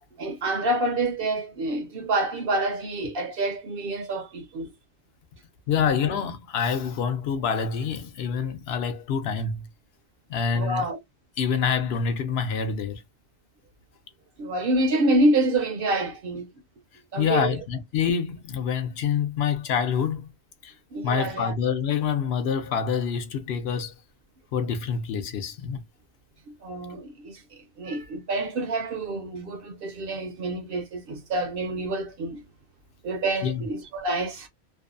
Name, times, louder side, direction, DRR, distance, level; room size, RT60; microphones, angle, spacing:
voice 1, 0.2-4.7 5.8-5.9 10.5-11.0 14.4-16.5 17.1-17.6 20.9-21.5 26.6-27.4 27.8-32.4 33.0-34.5, right 2 dB, 65° right, 0.7 m, -27 dB
voice 2, 5.7-9.6 10.3-10.8 11.4-13.0 17.2-20.3 20.6-20.7 21.0-23.9 24.5-25.8 33.4-33.6, left 6 dB, 70° left, 0.8 m, -26 dB
2.6 x 2.1 x 2.4 m
omnidirectional pair, 1.1 m